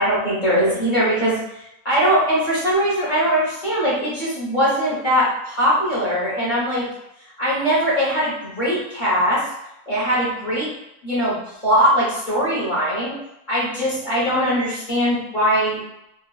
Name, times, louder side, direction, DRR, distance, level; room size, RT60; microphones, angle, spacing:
voice 1, 0.0-1.4 1.8-6.9 7.4-9.4 9.9-10.7 11.0-13.1 13.5-15.8, equal, 35° left, -8 dB, 1.1 m, -21 dB
3.3 x 2.3 x 2.3 m, 0.87 s
omnidirectional pair, 1.5 m